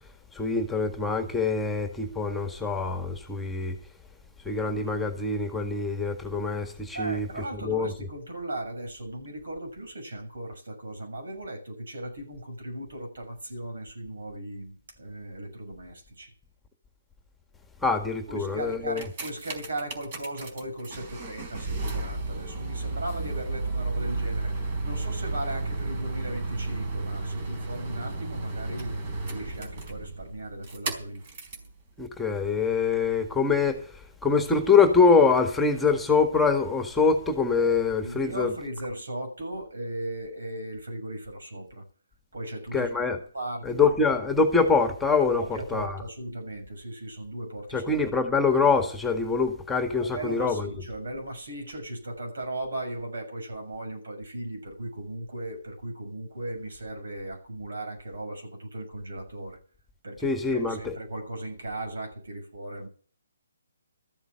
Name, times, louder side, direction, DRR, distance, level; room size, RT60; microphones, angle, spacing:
voice 1, 0.3-3.7 4.4-7.3 7.6-7.9 17.8-19.0 32.0-38.5 42.7-43.2 43.6-46.0 47.7-50.7 60.2-60.9, left 4 dB, 5° left, 1.8 m, -24 dB
voice 2, 6.9-16.3 18.3-29.0 29.3-31.2 31.6-31.7 38.0-41.8 42.3-42.9 43.3-43.9 45.4-47.9 50.0-59.6 60.0-62.9, right 1 dB, 75° right, 6.7 m, -37 dB
sound 1, 18.7-31.7 32.4-32.5, right 3 dB, 40° right, 4.1 m, -33 dB
14.0 x 8.0 x 8.0 m
hypercardioid pair, 150°, 0 cm